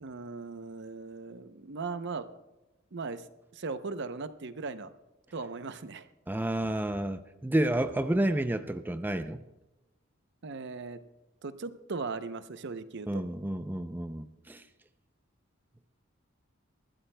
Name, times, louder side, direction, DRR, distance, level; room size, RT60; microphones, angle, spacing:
voice 1, 0.0-2.3 2.9-3.3 3.5-4.9 5.3-6.1 10.4-11.0 11.4-13.2, right 4 dB, 60° right, 11 dB, 0.7 m, -38 dB
voice 2, 6.3-9.4 13.1-14.6, right 1 dB, 10° right, 9 dB, 0.5 m, -30 dB
24.0 x 13.0 x 2.2 m, 1.0 s
head